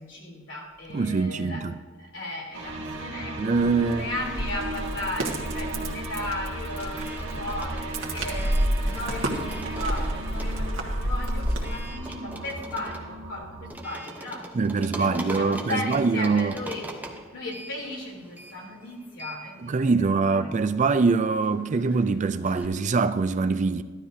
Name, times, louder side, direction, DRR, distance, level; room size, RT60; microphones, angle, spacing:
voice 1, 0.0-1.7 2.0-16.9 17.3-20.6, left 1 dB, 70° left, 3.4 m, -36 dB
voice 2, 0.9-1.7 3.4-4.1 14.6-16.5 19.6-23.8, right 4 dB, 40° right, 0.4 m, -23 dB
sound 1, 2.5-13.7, right 2 dB, 70° right, 1.9 m, -37 dB
sound 2, 3.6-11.9, right 1 dB, 90° right, 1.7 m, -30 dB
sound 3, 4.7-5.1 5.3-22.7, right 1 dB, 10° right, 1.0 m, -43 dB
15.0 x 12.5 x 2.8 m
head